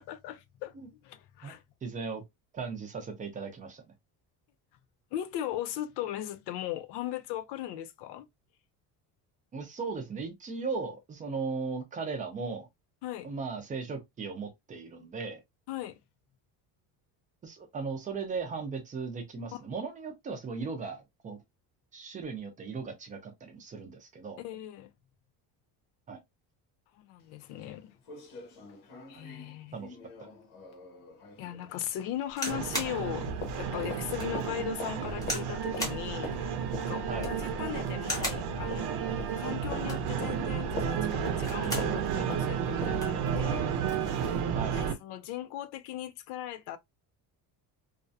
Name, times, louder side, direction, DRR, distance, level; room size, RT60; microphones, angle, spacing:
voice 1, 0.0-0.7 1.0-1.6 5.1-8.3 13.0-13.3 15.7-16.0 19.5-19.6 24.4-24.9 26.9-27.9 29.1-29.8 31.4-38.9 39.4-43.9 44.7-46.8, left 12 dB, 80° left, 0.5 m, -38 dB
voice 2, 1.8-2.2 2.5-3.8 9.5-12.7 13.2-15.4 17.4-21.4 21.9-24.4 26.1-26.2 29.7-30.3 37.1-37.3 44.5-44.8, right 4 dB, 20° right, 0.4 m, -37 dB
sound 1, 27.2-27.3 27.6-27.7 28.0-32.6 32.9-44.5 44.8-44.9, left 2 dB, 65° left, 0.9 m, -46 dB
sound 2, 32.3-33.0 33.5-33.6 34.1-34.3 35.2-35.5 35.8-36.0 37.1-37.4 38.0-38.5 39.7-40.1 41.2-41.9 42.4-42.5 42.7-43.2 44.0-44.3, left 1 dB, 10° left, 0.8 m, -36 dB
sound 3, 32.5-45.0, right 7 dB, 70° right, 0.6 m, -32 dB
2.4 x 2.2 x 2.5 m
cardioid pair, 175°, 41 cm